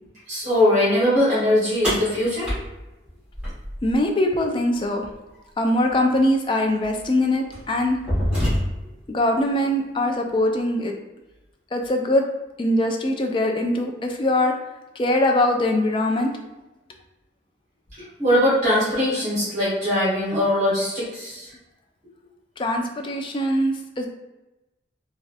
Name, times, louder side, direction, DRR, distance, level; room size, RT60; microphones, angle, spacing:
voice 1, 0.3-2.5 18.2-21.5, left 1 dB, 40° right, -10 dB, 1.3 m, -21 dB
sound 1, 1.8-4.0 5.9-6.0 6.8-7.0 7.5-9.0, equal, 5° right, 1.5 m, -26 dB
voice 2, 3.8-5.1 5.6-8.0 9.1-10.9 11.7-12.2 12.6-14.5 15.0-16.3 22.6-24.1, left 1 dB, 25° left, 3 dB, 0.3 m, -22 dB
3.2 x 2.4 x 2.6 m, 1.0 s
head